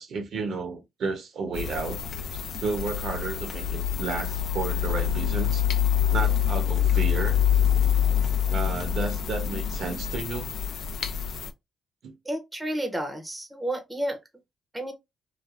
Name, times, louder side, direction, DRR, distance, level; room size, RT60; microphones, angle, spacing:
voice 1, 0.0-2.0 2.3-5.6 6.1-7.4 8.5-10.5 12.0-12.1, right 4 dB, 65° right, 0.8 m, -32 dB
sound 1, 1.5-11.5, left 9 dB, 65° left, 0.4 m, -26 dB
voice 2, 12.3-14.2 14.7-14.9, right 1 dB, 10° right, 0.6 m, -31 dB
3.2 x 2.1 x 2.5 m
cardioid pair, 90°, 0 cm